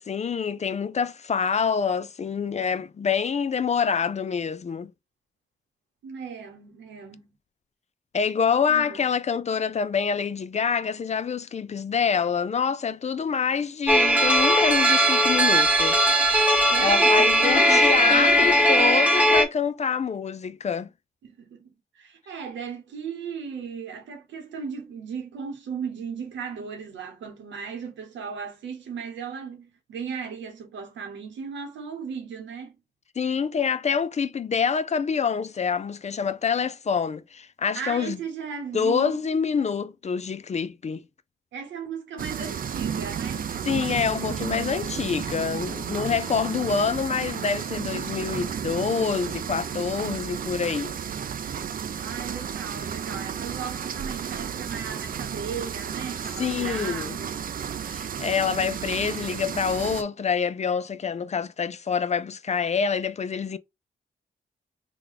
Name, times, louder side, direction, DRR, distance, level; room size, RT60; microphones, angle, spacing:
voice 1, 0.0-4.9 8.1-16.1 16.8-20.9 33.2-38.2 38.7-41.0 43.7-51.0 56.4-57.2 57.9-63.6, left 6 dB, 40° left, 0.4 m, -26 dB
voice 2, 6.0-7.3 8.7-9.0 16.7-18.6 21.2-32.8 37.7-39.3 41.5-43.5 51.9-57.5, right 6 dB, 90° right, 0.9 m, -36 dB
sound 1, 13.9-19.4, equal, 5° right, 0.9 m, -19 dB
sound 2, 42.2-60.0, right 8 dB, 50° right, 0.4 m, -32 dB
3.2 x 2.2 x 3.7 m
supercardioid pair, 45°, 19 cm